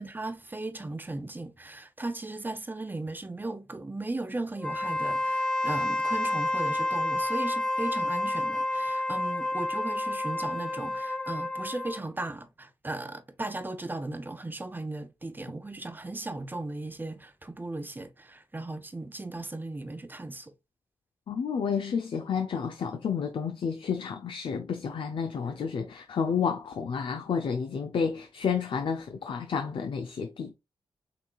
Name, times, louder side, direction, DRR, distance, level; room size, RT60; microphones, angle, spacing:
voice 1, 0.0-20.5, right 2 dB, 20° right, 0.7 m, -37 dB
Wind instrument woodwind instrument, 4.6-12.1, left 1 dB, 10° left, 0.9 m, -29 dB
voice 2, 21.3-30.5, left 6 dB, 70° left, 0.5 m, -30 dB
5.9 x 3.0 x 2.3 m
cardioid pair, 65°, 9 cm